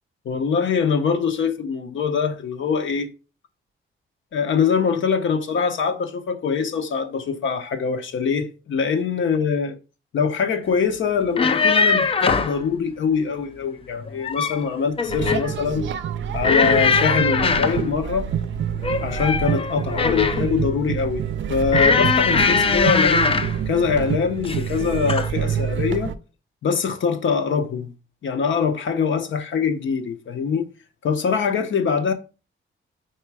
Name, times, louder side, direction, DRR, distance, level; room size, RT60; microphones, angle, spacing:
voice 1, 0.2-3.1 4.3-9.8 10.1-15.9 16.3-18.3 19.0-21.2 21.5-23.2 23.7-26.1 26.6-27.9 28.2-30.7 31.0-32.1, left 6 dB, 65° left, 0.9 m, -23 dB
sound 1, 11.2-12.6 14.0-14.6 15.0-15.5 16.4-17.8 18.8-20.5 21.7-23.6 24.4-24.7 25.1-25.3, left 5 dB, 25° left, 0.4 m, -20 dB
sound 2, 15.1-26.1, right 8 dB, 60° right, 0.4 m, -27 dB
4.5 x 4.5 x 4.7 m
wide cardioid pair, 175°, 21 cm